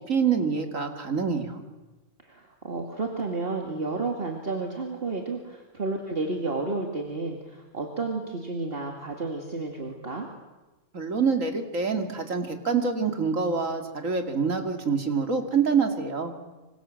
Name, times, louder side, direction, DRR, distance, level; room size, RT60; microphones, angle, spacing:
voice 1, 0.0-1.6 10.9-16.3, right 5 dB, 90° right, 5 dB, 2.9 m, -26 dB
voice 2, 2.2-10.3, right 3 dB, 45° right, 2 dB, 2.6 m, -31 dB
26.5 x 25.5 x 7.8 m, 1.2 s
omnidirectional pair, 1.3 m